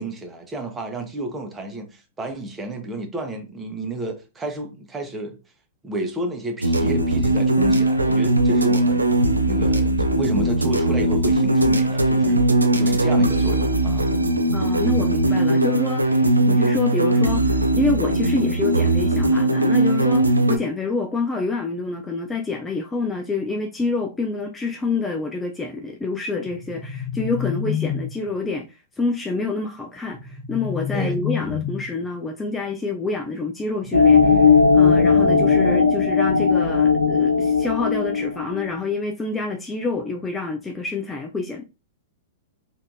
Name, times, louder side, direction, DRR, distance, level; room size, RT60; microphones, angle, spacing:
voice 1, 0.0-5.4 5.8-12.4 12.7-14.1 30.9-31.2, right 2 dB, 15° right, 0.8 m, -31 dB
sound 1, 6.6-20.6, right 1 dB, 90° right, 0.4 m, -19 dB
voice 2, 14.5-41.6, left 3 dB, 15° left, 0.3 m, -27 dB
sound 2, 26.4-28.4 30.1-32.0 33.8-35.8, left 8 dB, 35° left, 1.3 m, -29 dB
sound 3, 33.9-38.7, left 5 dB, 90° left, 0.5 m, -17 dB
3.2 x 2.6 x 2.6 m
figure-of-eight pair, 100°, 0 cm